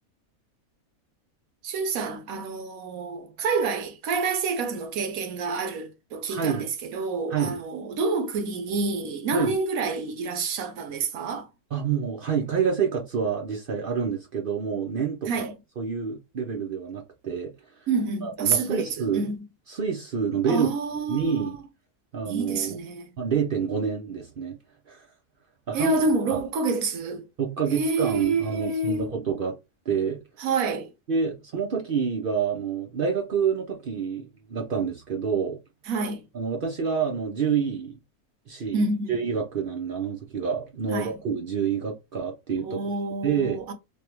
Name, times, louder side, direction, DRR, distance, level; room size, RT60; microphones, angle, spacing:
voice 1, 1.6-11.5 15.3-15.5 17.9-19.4 20.5-21.6 22.3-23.1 25.7-27.2 27.7-29.1 30.4-30.9 35.9-36.2 38.7-39.2 40.9-41.1 42.6-43.7, right 4 dB, 75° right, 1.1 m, -28 dB
voice 2, 6.3-6.7 7.3-7.6 9.3-9.6 11.7-15.5 15.8-17.5 18.2-19.3 19.7-20.7 21.1-21.6 22.1-22.8 23.2-24.6 24.9-25.1 25.7-25.9 26.3-26.4 27.4-29.6 29.9-30.2 31.1-35.6 36.3-38.0 38.5-38.8 39.1-42.8 43.2-43.6, right 6 dB, 55° right, 0.6 m, -27 dB
3.3 x 2.2 x 2.9 m
omnidirectional pair, 1.5 m